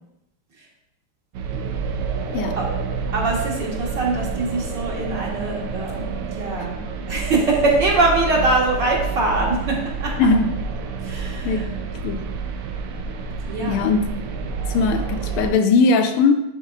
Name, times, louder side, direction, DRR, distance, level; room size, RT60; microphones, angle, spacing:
sound 1, 1.3-15.5, right 5 dB, 85° right, 1.6 m, -29 dB
voice 1, 3.1-6.8 7.1-10.1 11.0-11.7 13.5-13.9, right 2 dB, 55° right, -5 dB, 2.2 m, -23 dB
voice 2, 10.2-10.5 11.4-11.6 12.0-12.2 13.7-14.1 14.7-16.4, left 4 dB, 80° left, 6 dB, 1.5 m, -19 dB
11.0 x 4.4 x 2.4 m, 0.87 s
omnidirectional pair, 2.4 m